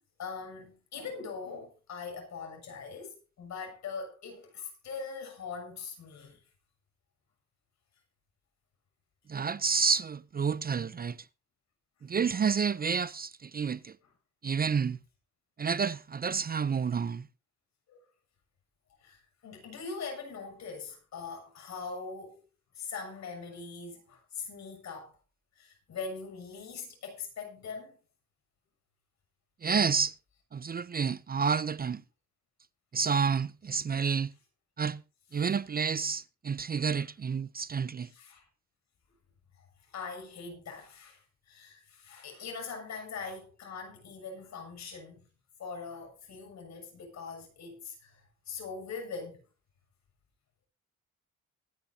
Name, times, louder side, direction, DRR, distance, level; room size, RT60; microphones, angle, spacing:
voice 1, 0.2-6.4 17.9-18.0 19.0-22.4 22.7-25.2 25.5-28.0 35.3-35.6 36.9-37.1 38.0-38.5 39.6-45.2 45.6-49.4, left 5 dB, 65° left, 7.1 m, -42 dB
voice 2, 9.3-11.2 12.0-13.9 14.4-15.0 15.6-17.3 29.6-30.2 30.5-32.0 32.9-34.3 34.8-35.0 35.3-38.1, right 6 dB, 30° right, 0.6 m, -29 dB
24.5 x 10.0 x 2.8 m
cardioid pair, 90°, 30 cm